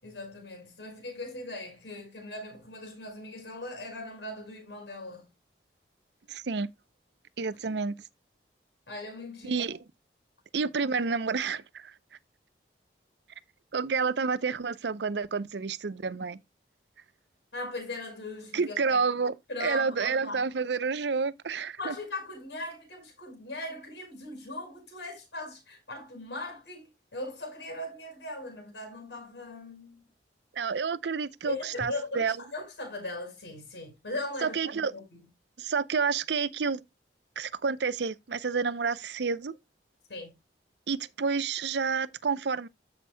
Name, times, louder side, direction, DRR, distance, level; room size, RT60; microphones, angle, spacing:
voice 1, 0.0-5.3 8.9-9.6 17.5-19.0 19.5-20.5 21.8-30.0 31.4-35.2 40.1-40.4, left 2 dB, 80° left, 5.4 m, -39 dB
voice 2, 6.3-6.7 7.4-7.9 9.4-9.8 10.5-11.9 13.7-16.4 18.5-19.3 19.6-22.0 30.5-32.4 34.4-34.9 35.6-36.8 37.4-39.5 40.9-42.7, right 5 dB, 75° right, 0.6 m, -29 dB
14.0 x 5.9 x 2.2 m
head